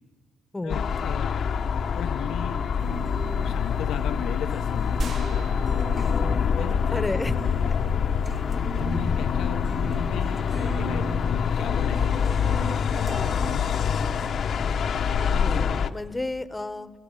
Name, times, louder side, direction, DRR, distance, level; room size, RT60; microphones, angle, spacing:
voice 1, 0.6-1.3 2.0-2.6 3.4-5.8 6.5-7.2 8.8-14.2, left 9 dB, 85° left, 4 dB, 1.0 m, -37 dB
sound 1, 0.7-15.9, left 7 dB, 60° left, 1.1 m, -25 dB
sound 2, 2.8-13.6, right 3 dB, 30° right, 1.9 m, -39 dB
sound 3, 5.0-7.3, right 4 dB, 60° right, 1.1 m, -39 dB
voice 2, 6.9-7.4 15.3-16.9, left 2 dB, 15° left, 13 dB, 1.2 m, -31 dB
28.5 x 19.5 x 9.2 m, 1.5 s
cardioid pair, 90°, 0 cm